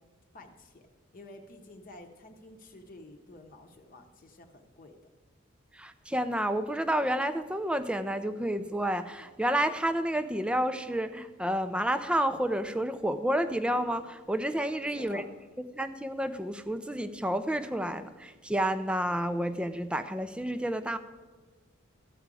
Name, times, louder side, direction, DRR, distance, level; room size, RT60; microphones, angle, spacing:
voice 1, 0.3-0.9 1.1-5.1 14.9-15.3, left 2 dB, 40° left, 3 dB, 0.9 m, -50 dB
voice 2, 5.7-15.2 15.7-21.0, right 1 dB, 5° right, 11 dB, 0.4 m, -30 dB
14.0 x 5.0 x 8.3 m, 1.4 s
head